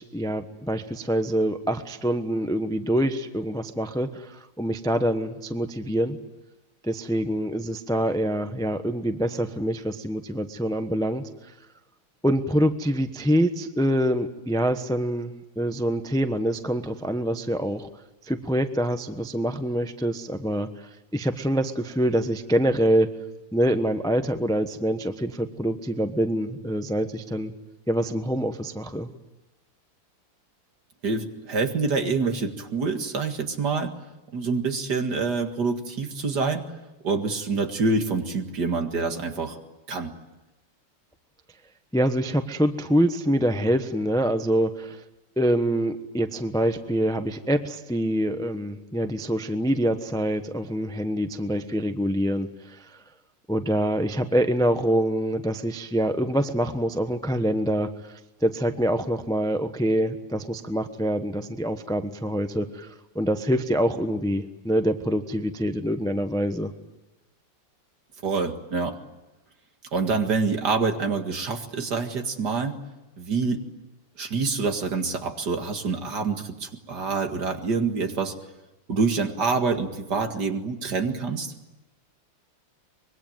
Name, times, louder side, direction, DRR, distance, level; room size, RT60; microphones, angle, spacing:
voice 1, 0.0-6.2 6.8-11.3 12.2-17.9 18.2-23.1 23.5-27.5 27.9-29.1 41.9-45.0 45.4-53.0 53.5-66.7, equal, 5° left, 8 dB, 0.4 m, -25 dB
voice 2, 31.0-33.9 34.3-36.7 37.0-39.6 39.9-40.1 68.2-69.0 69.9-72.8 73.2-73.6 74.2-78.4 78.9-81.5, right 4 dB, 50° right, 5 dB, 2.4 m, -26 dB
25.0 x 22.5 x 9.2 m, 1.0 s
omnidirectional pair, 2.4 m